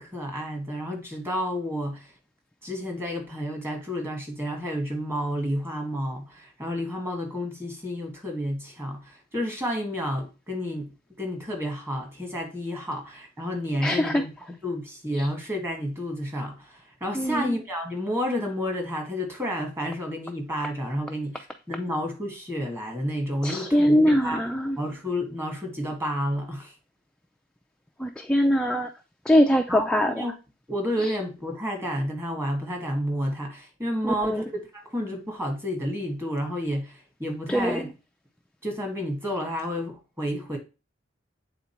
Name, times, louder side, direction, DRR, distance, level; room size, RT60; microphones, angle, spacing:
voice 1, 0.0-2.1 2.6-14.3 14.6-24.5 24.8-26.7 29.7-30.3 30.7-37.9 38.6-40.6, equal, 15° right, 1.6 m, -30 dB
voice 2, 13.8-14.2 15.2-15.3 17.1-17.5 23.4-24.8 28.0-28.9 29.3-30.2 31.0-31.1 34.0-34.4 37.5-37.8, equal, 5° left, 0.3 m, -22 dB
8.3 x 3.7 x 4.4 m
head